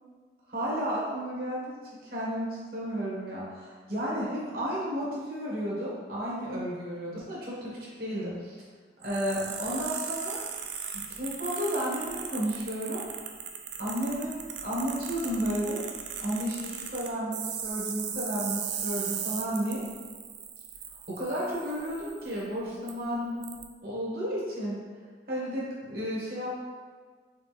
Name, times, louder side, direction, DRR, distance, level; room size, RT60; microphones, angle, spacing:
voice 1, 0.5-8.6 9.0-10.4 10.9-13.0 13.8-15.8 16.2-19.8 21.1-23.4 23.8-24.8 25.3-26.5, equal, 55° right, -6 dB, 1.4 m, -32 dB
sound 1, 9.0-22.4 22.9-23.0 23.4-23.6, right 7 dB, 75° right, 0.5 m, -38 dB
4.4 x 3.7 x 3.3 m, 1.5 s
head